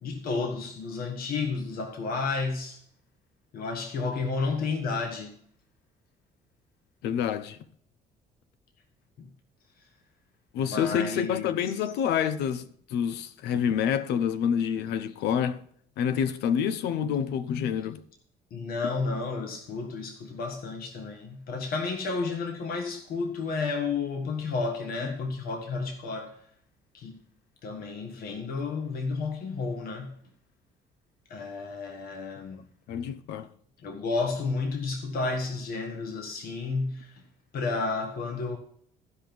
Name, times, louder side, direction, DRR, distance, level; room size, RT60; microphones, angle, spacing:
voice 1, 0.0-2.8 3.5-5.4 9.2-9.3 10.6-11.6 18.5-26.4 26.9-27.2 27.6-30.2 31.3-32.6 33.8-37.2 37.5-38.6, left 4 dB, 60° left, 1.8 m, -31 dB
voice 2, 7.0-7.6 10.5-15.6 16.0-18.0 32.9-33.5, left 8 dB, 85° left, 0.8 m, -27 dB
14.5 x 5.4 x 6.0 m
cardioid pair, 110°, 17 cm